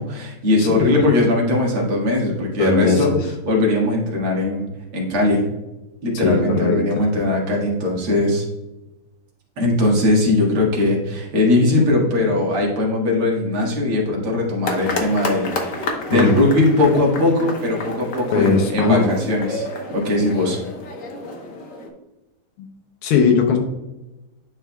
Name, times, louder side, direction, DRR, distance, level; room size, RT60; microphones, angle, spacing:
voice 1, 0.0-3.1 3.5-4.6 4.9-5.4 6.0-8.4 9.6-20.6, left 2 dB, 85° right, -2 dB, 2.7 m, -20 dB
voice 2, 0.6-1.0 2.6-3.2 6.1-7.0 16.1-16.4 18.3-19.1 22.6-22.7 23.0-23.6, left 5 dB, 85° left, 2 dB, 1.7 m, -19 dB
sound 1, 14.6-21.9, left 2 dB, 45° left, 1.2 m, -30 dB
10.5 x 4.6 x 2.3 m, 0.99 s
omnidirectional pair, 2.3 m